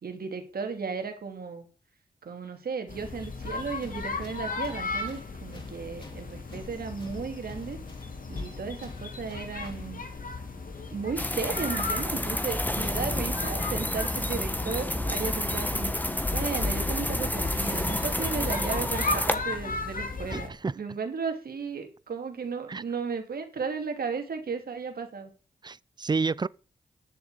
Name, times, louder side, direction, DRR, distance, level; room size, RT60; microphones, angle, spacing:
voice 1, 0.0-1.7 2.2-7.8 8.3-10.0 10.9-16.0 16.3-20.5 20.7-25.3, right 5 dB, 65° right, 2.7 m, -35 dB
sound 1, 2.9-20.5, left 3 dB, 55° left, 2.6 m, -36 dB
Tools, 3.4-10.0, left 1 dB, 30° left, 4.2 m, -51 dB
sound 2, 11.2-19.4, left 1 dB, 10° left, 1.5 m, -29 dB
voice 2, 20.3-20.7 22.7-22.8 25.6-26.5, right 4 dB, 25° right, 0.5 m, -29 dB
10.5 x 7.1 x 6.8 m
supercardioid pair, 45°, 17 cm